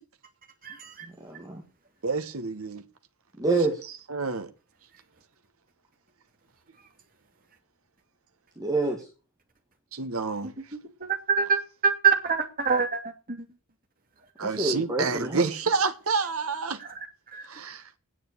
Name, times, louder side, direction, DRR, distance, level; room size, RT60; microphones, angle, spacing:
voice 1, 1.2-1.6 3.4-3.8 8.6-9.1 14.4-15.5, right 2 dB, 15° right, 2.2 m, -27 dB
voice 2, 2.0-2.8 4.1-4.5 9.9-10.5 14.4-16.8 17.5-17.9, right 4 dB, 80° right, 1.3 m, -28 dB
voice 3, 11.3-13.0 13.3-13.4 17.3-17.4, right 6 dB, 40° right, 2.5 m, -24 dB
9.9 x 8.3 x 8.1 m
head